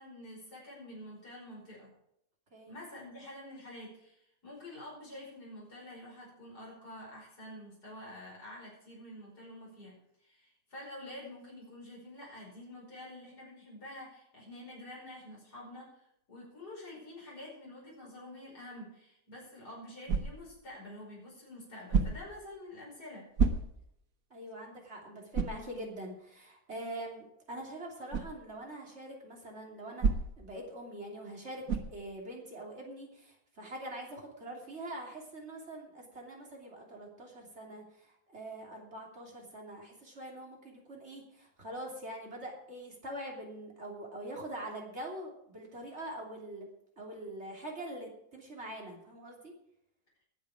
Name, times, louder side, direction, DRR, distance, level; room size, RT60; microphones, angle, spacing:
voice 1, 0.0-1.9 2.7-23.3, left 1 dB, 85° left, -4 dB, 5.7 m, -48 dB
sound 1, 20.1-20.6 21.9-22.4 23.4-24.0 24.5-24.6 25.3-25.7 28.1-28.4 30.0-30.5 31.7-32.0, right 5 dB, 60° right, 1.7 m, -30 dB
voice 2, 24.3-30.1 30.4-31.6 31.9-46.7 47.0-49.5, right 1 dB, 45° right, -1 dB, 3.3 m, -44 dB
20.5 x 7.5 x 4.9 m, 0.76 s
omnidirectional pair, 1.7 m